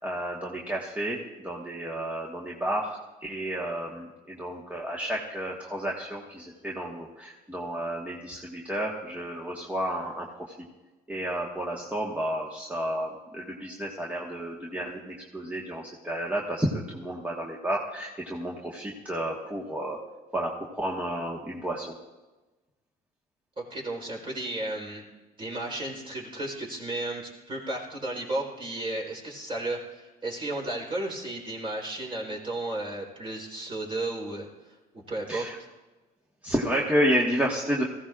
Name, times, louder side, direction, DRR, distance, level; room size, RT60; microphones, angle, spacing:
voice 1, 0.0-10.5 11.1-20.0 20.3-21.9 35.3-35.6 36.4-37.8, right 1 dB, 10° right, -3 dB, 1.5 m, -31 dB
voice 2, 23.6-25.0 25.4-35.5, right 2 dB, 30° right, -1 dB, 3.9 m, -34 dB
19.0 x 15.5 x 2.5 m, 1.1 s
cardioid pair, 110°, 17 cm